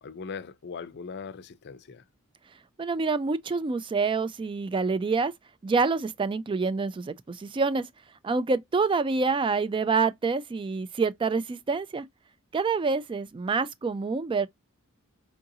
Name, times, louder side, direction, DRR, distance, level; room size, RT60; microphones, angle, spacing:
voice 1, 0.0-2.0, left 5 dB, 50° left, 0.5 m, -40 dB
voice 2, 2.8-5.3 5.6-7.9 8.2-12.1 12.5-14.5, right 4 dB, 20° right, 0.3 m, -27 dB
4.6 x 2.5 x 2.7 m
head